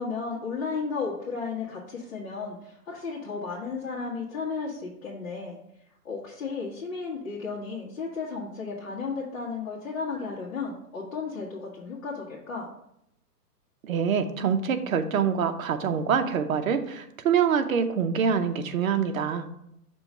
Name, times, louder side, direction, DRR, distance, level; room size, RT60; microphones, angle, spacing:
voice 1, 0.0-5.6 6.0-12.7, left 4 dB, 50° left, -5 dB, 1.5 m, -34 dB
voice 2, 13.8-19.4, right 7 dB, 55° right, 7 dB, 0.7 m, -25 dB
6.2 x 3.0 x 5.3 m, 0.79 s
hypercardioid pair, 165°, 48 cm